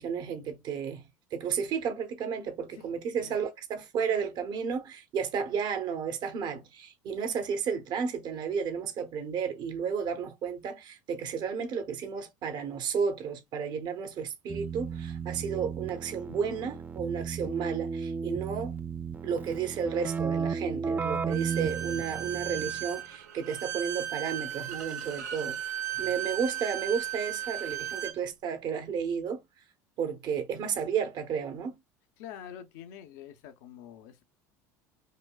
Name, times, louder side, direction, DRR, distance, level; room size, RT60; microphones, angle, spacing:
voice 1, 0.0-18.7 19.2-25.6 26.0-29.4 30.0-31.8, right 6 dB, 55° right, 1.1 m, -32 dB
Keyboard (musical), 14.5-22.9, right 6 dB, 20° right, 0.4 m, -34 dB
Bowed string instrument, 21.3-28.2, right 11 dB, 90° right, 0.8 m, -36 dB
voice 2, 25.2-26.0 32.2-34.2, left 9 dB, 75° left, 0.8 m, -47 dB
5.1 x 2.2 x 2.3 m
supercardioid pair, 90°, 9 cm